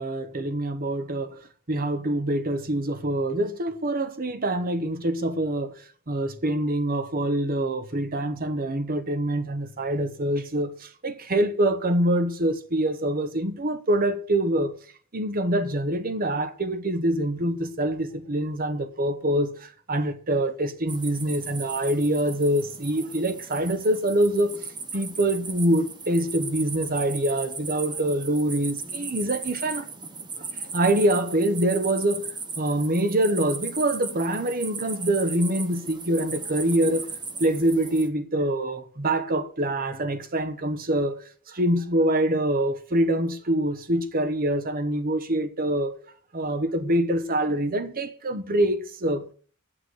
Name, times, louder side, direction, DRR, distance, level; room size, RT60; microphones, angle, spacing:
voice 1, 0.0-1.4 1.7-5.8 6.1-14.8 15.1-24.6 24.9-29.9 30.4-32.3 32.6-37.1 37.4-41.2 41.5-46.0 46.3-49.3, right 1 dB, 40° right, 1.0 m, -25 dB
sound 1, 20.9-38.1, right 4 dB, 20° right, 0.9 m, -37 dB
8.2 x 6.0 x 7.8 m
head